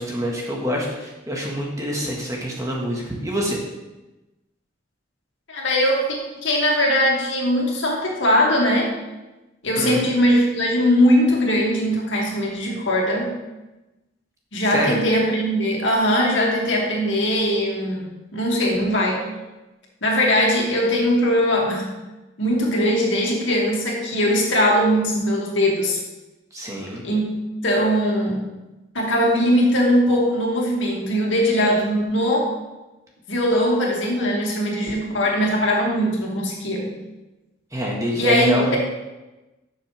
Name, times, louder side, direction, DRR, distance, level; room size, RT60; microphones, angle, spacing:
voice 1, 0.0-3.6 9.7-10.0 14.7-15.0 26.5-27.0 37.7-38.8, equal, 15° right, -2 dB, 1.6 m, -25 dB
voice 2, 5.5-8.9 9.6-13.3 14.5-19.2 20.0-21.9 22.4-26.0 27.0-27.4 27.6-28.4 28.9-32.5 33.3-36.9 38.2-38.8, equal, 75° left, -2 dB, 2.3 m, -20 dB
12.5 x 6.6 x 3.4 m, 1.1 s
head